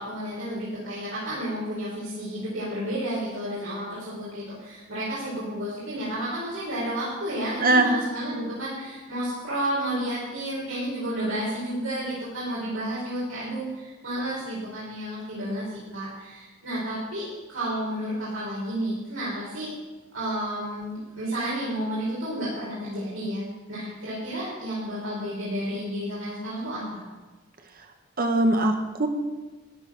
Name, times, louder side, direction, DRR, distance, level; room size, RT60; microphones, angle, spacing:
voice 1, 0.0-15.6 15.9-19.7 20.1-23.4 23.7-27.0, right 1 dB, 85° right, -9 dB, 5.0 m, -31 dB
voice 2, 28.2-29.1, right 2 dB, 45° right, 5 dB, 1.7 m, -21 dB
14.0 x 9.8 x 6.3 m, 1.2 s
head